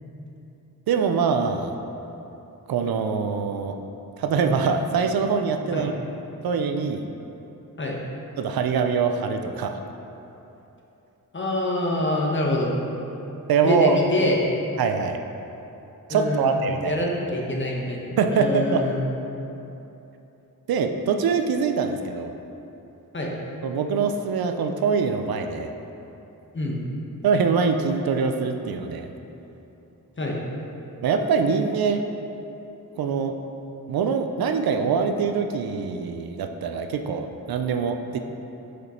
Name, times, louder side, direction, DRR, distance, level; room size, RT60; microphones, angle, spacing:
voice 1, 0.9-1.7 2.7-3.8 4.2-6.0 6.4-7.0 8.4-9.8 13.5-14.0 14.8-15.2 16.1-17.0 18.2-18.8 20.7-22.3 23.6-25.7 27.2-29.1 31.0-32.0 33.0-33.4 33.9-38.2, right 5 dB, 80° right, 6 dB, 0.5 m, -23 dB
voice 2, 11.3-12.7 13.6-14.4 16.1-16.6 16.8-19.0 23.1-23.3 26.5-26.8 30.2-30.4, left 1 dB, 30° left, -2 dB, 1.2 m, -25 dB
6.7 x 5.1 x 4.3 m, 3.0 s
cardioid pair, 75°, 36 cm